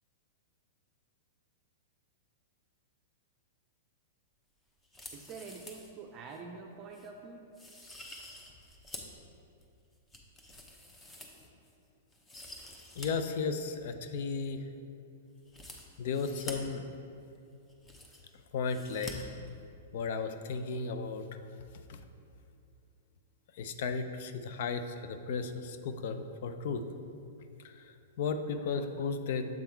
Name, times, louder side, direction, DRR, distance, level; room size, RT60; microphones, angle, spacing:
sound 1, 4.8-5.9 6.3-6.4 6.9-7.1 7.5-9.2 9.6-11.7 12.1-13.1 13.4-13.5 15.4-16.5 17.4-17.5 17.6-18.4 18.7-19.1 19.4-19.5, left 1 dB, 15° left, 0.8 m, -48 dB
voice 1, 5.1-7.5, right 4 dB, 35° right, 1 dB, 0.5 m, -46 dB
voice 2, 13.0-14.7 16.0-16.8 18.5-19.3 19.9-21.4 21.9-22.0 23.6-26.8 27.6-29.5, left 5 dB, 60° left, 8 dB, 0.5 m, -35 dB
7.3 x 3.6 x 4.5 m, 2.6 s
hypercardioid pair, 130°, 0 cm